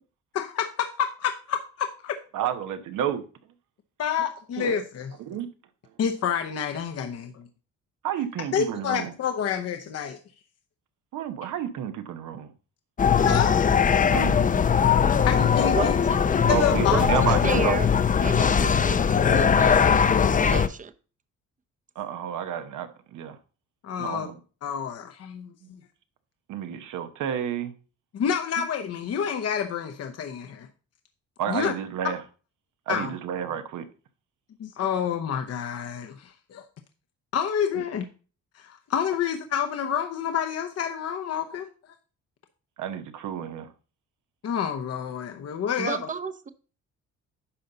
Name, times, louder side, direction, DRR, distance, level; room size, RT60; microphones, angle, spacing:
voice 1, 0.3-2.2 4.0-5.1 6.0-7.4 8.5-10.2 13.2-13.6 15.2-16.1 16.5-17.0 17.4-17.7 23.8-24.3 24.6-25.5 28.1-30.7 31.5-31.7 32.9-33.1 34.6-36.6 37.3-38.0 38.6-41.7 44.4-46.0, left 8 dB, 55° left, 0.9 m, -28 dB
voice 2, 2.3-3.2 4.6-4.8 5.3-5.5 8.0-9.1 11.1-12.5 14.1-14.4 16.5-17.8 22.0-23.4 24.0-24.4 25.6-25.7 26.5-27.7 31.4-32.2 32.9-33.9 42.8-43.7, right 9 dB, 85° right, 1.0 m, -30 dB
sound 1, 13.0-20.7, left 7 dB, 25° left, 0.5 m, -20 dB
voice 3, 15.8-16.2 16.9-17.1 17.4-17.9 18.2-20.1 20.4-20.9 45.8-46.5, right 5 dB, 25° right, 0.7 m, -32 dB
10.0 x 5.5 x 3.9 m
cardioid pair, 90°, 30 cm